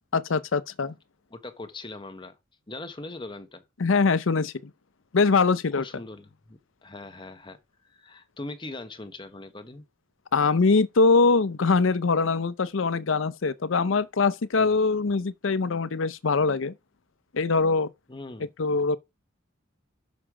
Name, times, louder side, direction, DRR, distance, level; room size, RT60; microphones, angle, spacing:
voice 1, 0.1-0.9 3.8-4.7 5.1-5.8 10.3-16.7 17.3-17.9 18.6-19.0, left 4 dB, 70° left, 0.6 m, -23 dB
voice 2, 1.3-2.4 2.7-3.6 5.8-7.6 7.9-9.8 14.6-14.7 18.1-18.5, left 2 dB, 25° left, 1.1 m, -40 dB
6.6 x 6.1 x 4.9 m
head